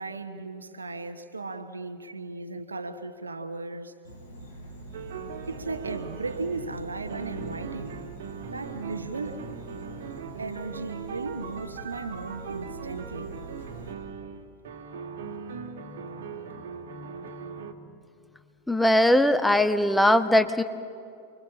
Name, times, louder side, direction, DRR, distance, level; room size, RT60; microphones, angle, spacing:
voice 1, 0.0-3.9 5.5-8.0 8.5-9.4 10.4-13.4, right 3 dB, 75° right, 1.3 m, -36 dB
Insect, 4.0-13.9, right 3 dB, 70° left, 6.7 m, -44 dB
sound 1, 4.9-17.7, right 6 dB, 60° right, 1.9 m, -40 dB
voice 2, 18.7-20.6, left 1 dB, 5° left, 1.2 m, -20 dB
29.0 x 23.5 x 7.3 m
figure-of-eight pair, 90°, 0 cm